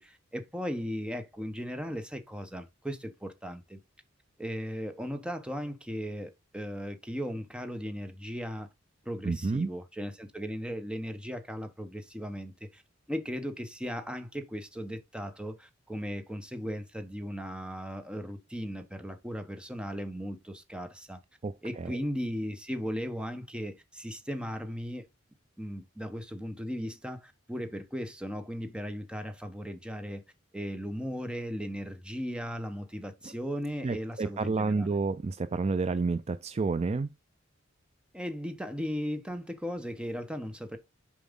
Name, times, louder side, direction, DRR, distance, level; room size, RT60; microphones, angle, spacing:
voice 1, 0.0-3.8 4.4-8.7 9.0-12.8 13.1-21.2 21.6-25.1 25.6-30.2 30.5-34.9 38.1-40.8, equal, 5° right, 0.9 m, -37 dB
voice 2, 9.2-9.7 21.4-22.0 33.2-33.3 33.8-37.1, right 4 dB, 30° right, 0.4 m, -30 dB
7.0 x 4.9 x 3.6 m
head